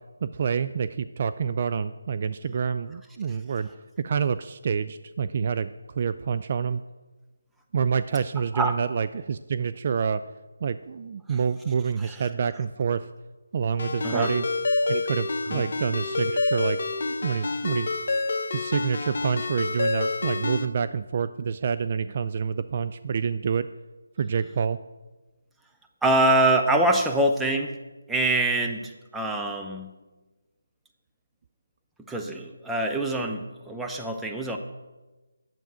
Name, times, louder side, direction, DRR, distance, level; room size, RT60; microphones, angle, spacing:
voice 1, 0.2-3.7 4.0-6.8 7.7-10.2 10.6-13.1 13.5-14.4 14.9-17.9 18.5-23.7 24.2-24.8, right 6 dB, 40° right, 12 dB, 0.3 m, -27 dB
Ringtone, 13.8-20.7, left 3 dB, 50° left, 0.9 m, -28 dB
voice 2, 26.0-27.7 28.1-29.9 32.1-34.6, right 1 dB, 5° right, 2 dB, 0.7 m, -24 dB
9.1 x 7.5 x 5.7 m, 1.2 s
figure-of-eight pair, 155°, 0 cm